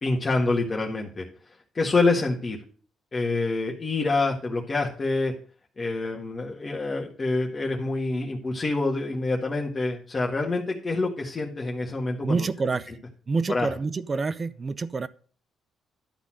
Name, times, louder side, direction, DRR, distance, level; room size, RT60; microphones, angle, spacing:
voice 1, 0.0-1.2 1.7-2.6 3.1-5.3 5.8-12.4 13.5-13.7, left 3 dB, 30° left, 1.7 m, -26 dB
voice 2, 12.2-13.0 13.3-15.1, right 4 dB, 35° right, 0.7 m, -27 dB
12.0 x 4.1 x 7.6 m
cardioid pair, 90°, 0 cm